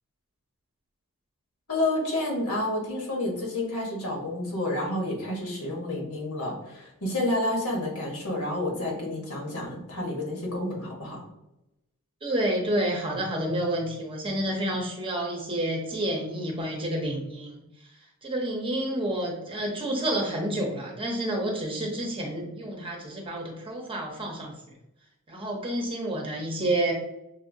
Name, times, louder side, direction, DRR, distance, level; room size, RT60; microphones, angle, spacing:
voice 1, 1.7-11.2, left 1 dB, 70° left, -1 dB, 1.3 m, -29 dB
voice 2, 12.2-17.6 18.2-24.5 25.3-26.9, right 1 dB, 25° right, 0 dB, 0.8 m, -29 dB
6.4 x 2.7 x 2.7 m, 0.89 s
head